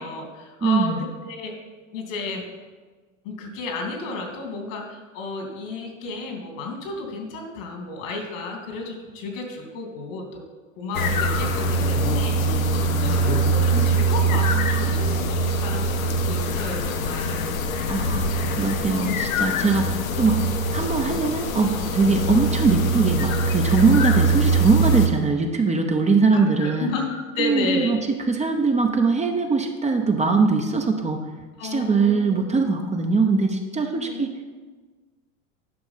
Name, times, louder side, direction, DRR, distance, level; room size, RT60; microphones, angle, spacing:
voice 1, 0.0-1.6 1.9-2.4 3.2-10.4 10.8-17.5 26.3-27.9 31.6-32.8 33.9-34.2, left 3 dB, 70° left, 2 dB, 2.8 m, -32 dB
voice 2, 0.6-1.0 17.9-18.3 18.6-20.4 20.7-26.9 27.4-28.0 28.3-31.2 31.6-34.3, right 4 dB, 15° right, 3 dB, 0.9 m, -21 dB
sound 1, 10.9-25.1, right 2 dB, 85° left, 1.1 m, -23 dB
10.5 x 6.1 x 5.7 m, 1.4 s
hypercardioid pair, 95°, 40 cm